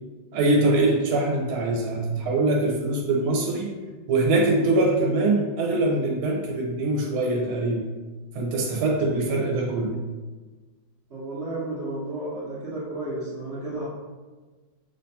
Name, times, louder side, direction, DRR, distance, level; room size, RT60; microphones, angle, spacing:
voice 1, 0.3-3.7 4.1-7.9 8.3-10.0, right 2 dB, 85° right, -1 dB, 1.5 m, -23 dB
voice 2, 11.1-13.8, right 2 dB, 55° right, -10 dB, 0.7 m, -32 dB
5.5 x 2.2 x 2.7 m, 1.3 s
omnidirectional pair, 2.3 m